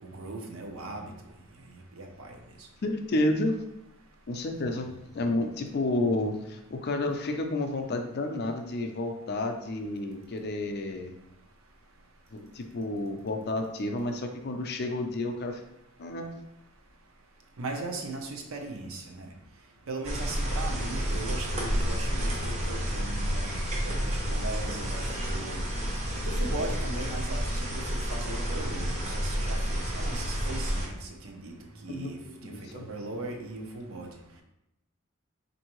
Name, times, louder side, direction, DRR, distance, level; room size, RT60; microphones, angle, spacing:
voice 1, 0.0-1.1 2.0-2.4 17.6-19.3 19.9-23.5 23.8-25.6 26.3-31.5 31.8-32.2 32.4-34.1, right 2 dB, 70° right, 2 dB, 0.7 m, -38 dB
voice 2, 2.8-3.6 4.3-11.1 12.3-15.6 16.0-16.3 31.9-32.1 32.4-32.9, left 2 dB, 50° left, 5 dB, 0.4 m, -30 dB
sound 1, 20.0-30.9, equal, 30° right, 0.6 m, -30 dB
4.4 x 2.7 x 3.0 m, 0.84 s
head